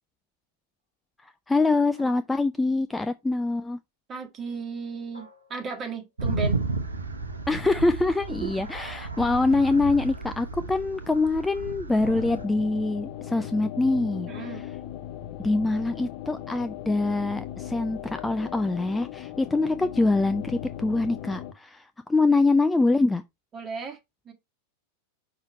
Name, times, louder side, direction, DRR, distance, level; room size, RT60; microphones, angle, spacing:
voice 1, 1.2-3.8 7.5-14.6 15.4-23.2, left 3 dB, 10° left, 0.4 m, -24 dB
sound 1, 2.0-2.6 5.1-6.0 8.8-9.4 12.0-12.7 14.3-14.8 16.2-16.8 18.1-18.8, left 1 dB, 80° left, 2.2 m, -54 dB
voice 2, 4.1-6.6 8.4-8.5 14.3-14.6 23.5-24.0 24.2-24.3, right 5 dB, 25° right, 1.7 m, -35 dB
sound 2, 6.2-12.4, right 3 dB, 75° right, 0.8 m, -32 dB
sound 3, 12.0-21.5, left 12 dB, 40° left, 0.8 m, -38 dB
5.6 x 4.7 x 4.3 m
figure-of-eight pair, 90°, 0 cm